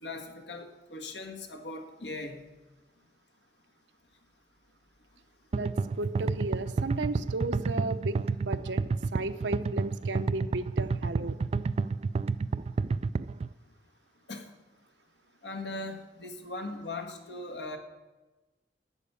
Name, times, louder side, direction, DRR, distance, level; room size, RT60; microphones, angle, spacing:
voice 1, 0.0-2.5 14.3-14.5 15.4-17.8, left 2 dB, 70° left, 5 dB, 1.7 m, -39 dB
sound 1, 5.5-13.5, right 4 dB, 35° right, 0.3 m, -29 dB
voice 2, 5.5-8.8 9.1-11.4, right 2 dB, 85° right, 9 dB, 0.9 m, -34 dB
11.5 x 9.3 x 8.5 m, 1.2 s
head